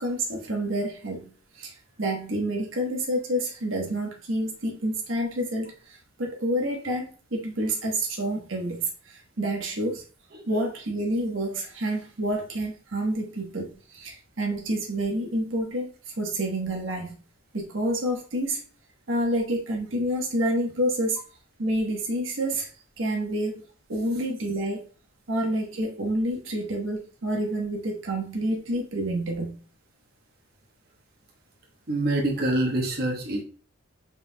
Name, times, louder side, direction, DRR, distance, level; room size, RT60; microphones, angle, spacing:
voice 1, 0.0-1.3 1.6-1.7 2.0-10.0 10.5-15.9 16.2-17.2 17.5-18.6 19.1-21.2 21.6-22.7 23.0-23.6 23.9-24.8 25.3-29.6, right 1 dB, 80° right, 1 dB, 1.1 m, -28 dB
voice 2, 31.9-33.4, right 1 dB, 50° right, 0 dB, 1.0 m, -25 dB
5.4 x 4.4 x 2.2 m, 0.39 s
head